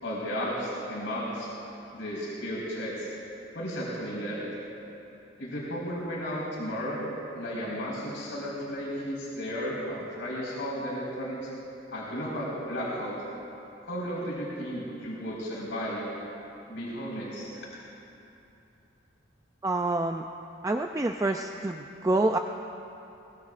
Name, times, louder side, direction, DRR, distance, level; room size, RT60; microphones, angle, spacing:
voice 1, 0.0-1.5 1.9-3.1 3.5-4.4 5.4-11.5 11.9-13.1 13.8-16.0 16.7-17.6, equal, 70° left, -7 dB, 4.4 m, -34 dB
voice 2, 19.6-20.2 20.6-22.4, right 2 dB, 15° right, 4 dB, 0.3 m, -27 dB
22.5 x 20.0 x 2.5 m, 2.9 s
head